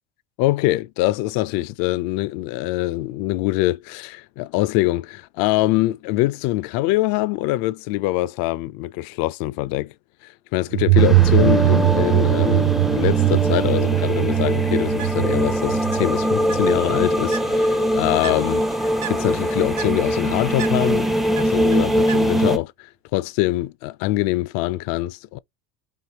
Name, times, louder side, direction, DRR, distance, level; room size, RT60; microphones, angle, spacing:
voice 1, 0.4-9.9 10.2-21.1 21.4-25.4, left 17 dB, 55° left, 0.5 m, -24 dB
sound 1, 10.7-17.3, right 17 dB, 55° right, 0.7 m, -20 dB
sound 2, 11.0-22.6, equal, ahead, 0.4 m, -22 dB
Bird, 14.8-22.6, right 10 dB, 85° right, 0.9 m, -39 dB
4.6 x 2.9 x 2.9 m
supercardioid pair, 95°, 41 cm